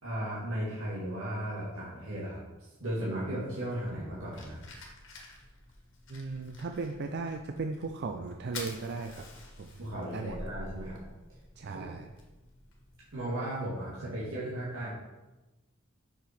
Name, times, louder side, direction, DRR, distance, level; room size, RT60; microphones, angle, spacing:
voice 1, 0.0-2.4 2.8-4.6 9.8-11.0 11.7-11.8 13.1-14.9, right 1 dB, 75° right, -8 dB, 2.0 m, -35 dB
Fire, 3.6-13.3, left 2 dB, 60° left, 1.5 m, -48 dB
voice 2, 6.1-9.3 9.6-9.7 10.1-10.4 11.6-12.1, right 4 dB, 55° right, 5 dB, 0.4 m, -36 dB
5.9 x 5.5 x 5.0 m, 1.1 s
head